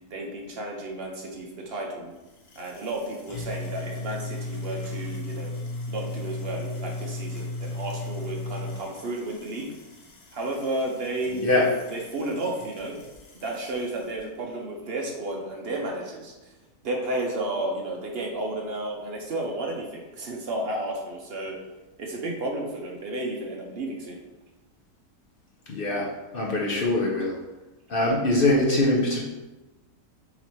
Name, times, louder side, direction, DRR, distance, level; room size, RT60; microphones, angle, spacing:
voice 1, 0.1-2.1 2.6-5.5 5.9-9.7 10.3-11.6 11.9-13.0 13.3-16.3 16.8-21.6 22.0-24.2, right 1 dB, 60° right, 0 dB, 0.6 m, -32 dB
sound 1, 2.2-14.2, left 2 dB, 85° left, 1.4 m, -37 dB
voice 2, 25.7-27.4 27.9-29.2, left 2 dB, 55° left, -2 dB, 0.6 m, -23 dB
4.0 x 2.8 x 4.4 m, 1.1 s
omnidirectional pair, 1.6 m